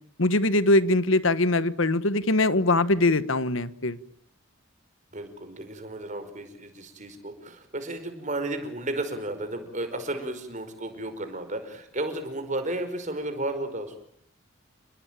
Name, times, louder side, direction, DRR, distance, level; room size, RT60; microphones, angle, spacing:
voice 1, 0.2-4.0, left 2 dB, 70° left, 15 dB, 1.4 m, -22 dB
voice 2, 5.1-14.0, right 1 dB, 35° right, 8 dB, 5.2 m, -33 dB
29.0 x 21.0 x 9.0 m, 0.67 s
head